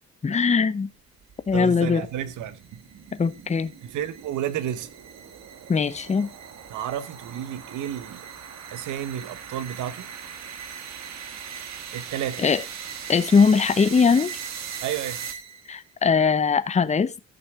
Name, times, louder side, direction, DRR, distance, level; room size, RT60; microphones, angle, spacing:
voice 1, 0.2-0.9 1.5-2.0 3.1-3.7 5.7-6.3 12.4-12.6 13.1-14.3 15.7-17.1, left 5 dB, 25° left, 0.7 m, -20 dB
sound 1, 1.0-15.8, right 7 dB, 65° right, 1.5 m, -39 dB
voice 2, 1.5-2.8 3.9-4.9 6.7-8.3 8.7-10.1 11.9-12.4 14.8-15.2, right 10 dB, 80° right, 1.0 m, -31 dB
13.5 x 6.0 x 3.6 m
cardioid pair, 90°, 30 cm